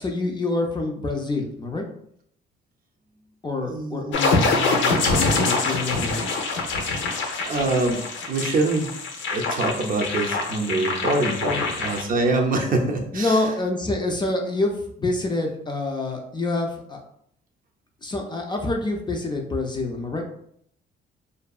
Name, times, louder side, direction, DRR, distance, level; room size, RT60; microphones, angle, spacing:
voice 1, 0.0-1.8 3.4-6.2 11.4-11.7 13.1-17.0 18.0-20.3, left 2 dB, 20° left, 2 dB, 0.4 m, -27 dB
voice 2, 3.7-4.4 7.4-8.0 8.3-8.9 9.3-13.4, right 2 dB, 45° right, 2 dB, 0.5 m, -24 dB
sound 1, 4.1-12.0, left 3 dB, 75° left, 0.5 m, -25 dB
2.6 x 2.2 x 2.3 m, 0.68 s
cardioid pair, 90°, 20 cm